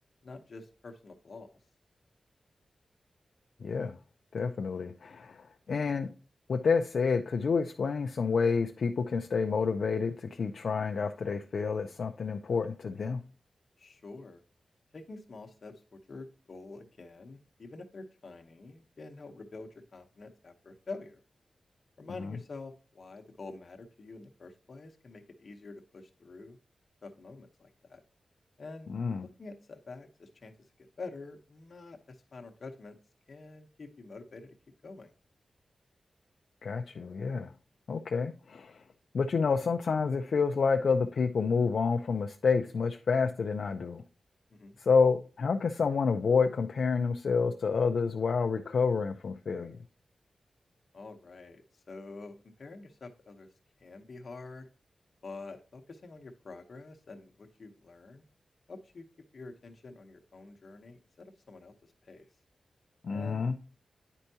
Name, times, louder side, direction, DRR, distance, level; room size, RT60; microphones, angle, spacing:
voice 1, 0.2-1.6 13.8-14.4 14.9-21.2 22.0-26.6 27.0-28.0 28.6-28.9 29.2-30.5 31.0-33.0 33.3-34.5 34.8-35.1 44.5-44.8 50.9-53.5 53.8-54.7 55.2-58.2 58.7-59.0 59.3-62.3 63.1-63.5, left 3 dB, 50° left, 0.9 m, -47 dB
voice 2, 3.6-4.0 4.3-6.1 6.5-13.2 22.2-22.4 28.9-29.3 36.6-37.5 37.9-38.8 39.1-44.0 44.8-49.8 63.0-63.5, left 5 dB, 65° left, 0.4 m, -29 dB
9.8 x 4.5 x 2.7 m
wide cardioid pair, 170°, 0 cm